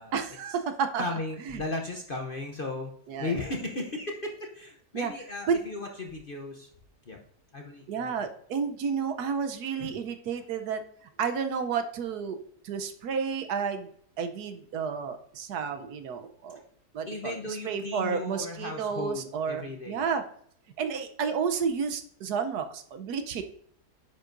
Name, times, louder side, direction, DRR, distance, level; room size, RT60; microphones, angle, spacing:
voice 1, 0.1-1.0 1.5-1.6 3.1-3.3 4.9-5.1 5.5-5.6 7.9-10.8 11.2-12.4 12.6-13.9 14.2-16.6 16.9-17.4 17.6-20.2 20.8-23.4, right 6 dB, 70° right, 8 dB, 1.2 m, -31 dB
voice 2, 1.0-2.9 3.2-6.7 7.1-7.2 7.5-8.2 9.8-9.9 17.1-20.0, left 2 dB, 45° left, 2 dB, 0.7 m, -36 dB
10.0 x 7.4 x 2.6 m, 0.63 s
omnidirectional pair, 1.8 m